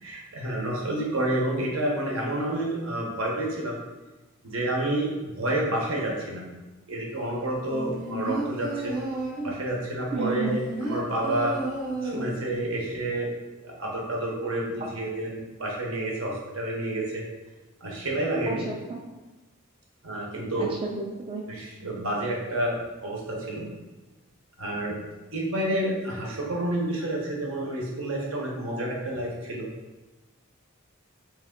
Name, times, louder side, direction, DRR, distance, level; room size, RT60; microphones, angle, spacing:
voice 1, 0.0-3.8 4.4-6.5 6.9-8.9 9.4-11.6 12.0-13.3 13.6-17.2 17.8-18.6 20.0-20.7 21.5-23.6 24.6-25.0 25.3-29.7, right 1 dB, 75° right, -2 dB, 0.9 m, -29 dB
sound 1, 7.7-9.6 10.2-12.6 12.9-13.0, right 2 dB, 45° right, 0.8 m, -32 dB
voice 2, 10.1-10.6 14.8-14.9 18.5-19.0 20.5-21.4, right 4 dB, 25° right, -2 dB, 0.3 m, -31 dB
3.4 x 3.2 x 3.7 m, 1.1 s
head